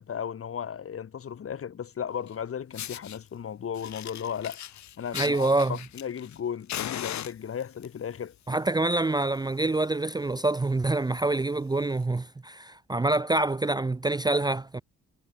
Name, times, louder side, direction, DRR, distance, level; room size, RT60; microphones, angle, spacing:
voice 1, 0.0-4.6 5.0-8.3, left 8 dB, 45° left, 1.9 m, -35 dB
Fire, 2.3-2.4 2.7-3.2 3.7-6.4 6.7-7.9 8.7-8.9 9.2-9.3 9.7-9.8 10.1-10.3 10.9-11.0 11.9-12.0, left 11 dB, 65° left, 1.9 m, -38 dB
voice 2, 5.1-5.8 8.5-14.8, right 2 dB, 15° right, 0.6 m, -26 dB
cardioid pair, 90°, 30 cm